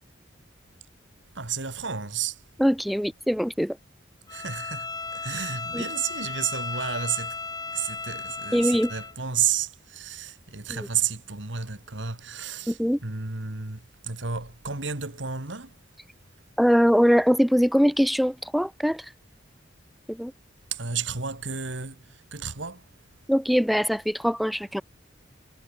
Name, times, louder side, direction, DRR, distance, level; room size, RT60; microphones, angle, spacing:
voice 1, 1.3-2.4 4.3-7.4 7.7-15.8 20.7-22.9, right 7 dB, 70° right, 2.2 m, -32 dB
voice 2, 2.6-3.8 5.7-5.8 8.5-8.9 10.7-10.9 12.7-13.0 16.6-19.0 20.1-20.3 23.3-24.8, equal, ahead, 1.0 m, -22 dB
Bowed string instrument, 4.3-9.2, left 4 dB, 20° left, 6.2 m, -35 dB
head